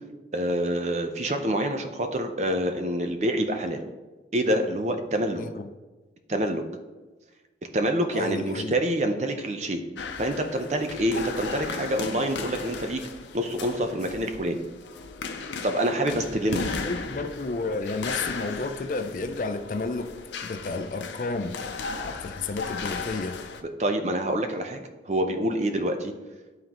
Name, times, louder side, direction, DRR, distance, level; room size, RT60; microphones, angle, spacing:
voice 1, 0.3-3.8 4.3-5.4 6.3-6.6 7.7-9.8 10.2-13.0 13.3-14.6 15.6-16.7 23.8-26.1, right 1 dB, 40° right, 0.6 m, -26 dB
voice 2, 5.3-5.7 8.1-8.8 16.5-20.2 20.4-21.6 22.0-23.4, left 3 dB, 45° left, 0.4 m, -31 dB
sound 1, 10.0-23.6, left 4 dB, 85° left, 0.6 m, -36 dB
11.5 x 3.8 x 2.9 m
head